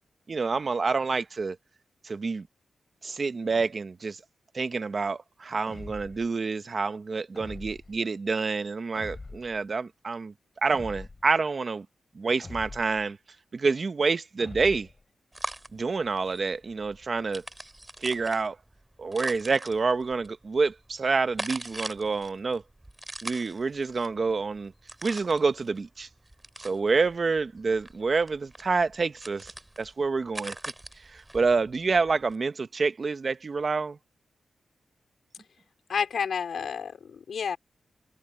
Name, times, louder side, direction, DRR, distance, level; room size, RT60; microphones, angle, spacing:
voice 1, 0.3-1.6 2.0-2.5 3.0-4.2 4.5-11.9 12.1-13.2 13.5-14.9 15.7-17.4 18.0-18.6 19.0-22.6 23.2-24.7 25.0-26.1 26.6-29.5 29.8-30.6 31.0-34.0, right 4 dB, 45° right, 1.0 m, -28 dB
sound 1, 5.7-6.3 7.4-8.0 9.0-9.6 10.7-11.4 12.4-13.1 14.4-15.0, left 3 dB, 30° left, 5.8 m, -43 dB
sound 2, 15.3-32.4, right 1 dB, 15° right, 6.0 m, -42 dB
voice 2, 35.9-37.6, left 6 dB, 75° left, 3.9 m, -30 dB
cardioid pair, 90°, 0 cm